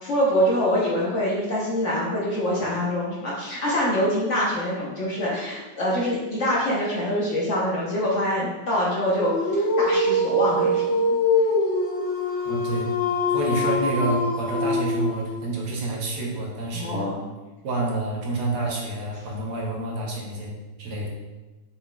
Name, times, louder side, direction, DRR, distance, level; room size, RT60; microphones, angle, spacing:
voice 1, 0.0-11.0 16.7-17.2, equal, 55° left, -5 dB, 0.9 m, -25 dB
Dog, 9.2-15.5, left 1 dB, 85° left, 0.6 m, -24 dB
voice 2, 12.4-12.9 13.3-17.0 17.6-20.5 20.8-21.1, right 2 dB, 70° right, -2 dB, 1.4 m, -28 dB
5.6 x 4.0 x 2.2 m, 1.1 s
omnidirectional pair, 1.9 m